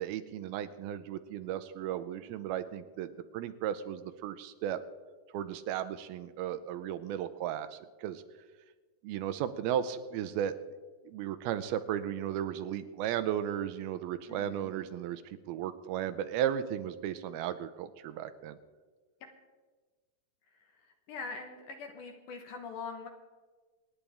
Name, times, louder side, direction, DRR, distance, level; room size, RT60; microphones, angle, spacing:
voice 1, 0.0-4.8 5.3-8.2 9.0-10.5 11.1-18.6, right 10 dB, 85° right, 11 dB, 2.5 m, -35 dB
voice 2, 14.3-14.7 19.2-19.3 21.1-23.1, left 4 dB, 65° left, 4 dB, 2.3 m, -42 dB
26.5 x 9.9 x 3.5 m, 1.4 s
omnidirectional pair, 4.4 m